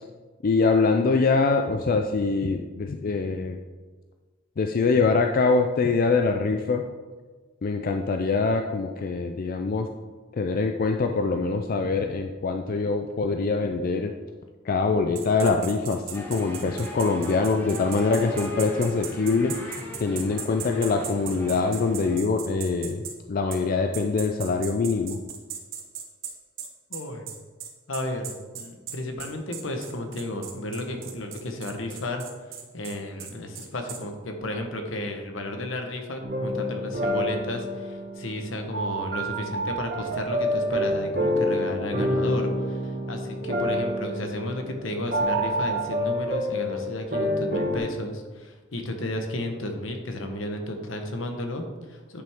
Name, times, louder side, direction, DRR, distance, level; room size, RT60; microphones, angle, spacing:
voice 1, 0.4-3.6 4.6-6.8 7.6-9.9 10.3-14.1 14.6-23.0 23.3-25.2, left 4 dB, 45° left, 5 dB, 0.4 m, -24 dB
sound 1, 15.2-23.2 23.5-23.6 23.9-34.0, right 8 dB, 75° right, 1.0 m, -38 dB
sound 2, 16.1-22.2, left 1 dB, 10° left, 1.3 m, -38 dB
voice 2, 26.9-27.3 27.9-52.2, left 1 dB, 75° left, 4 dB, 1.1 m, -33 dB
sound 3, 36.2-47.8, equal, 50° right, 1.3 m, -28 dB
9.9 x 5.9 x 3.6 m, 1.4 s
head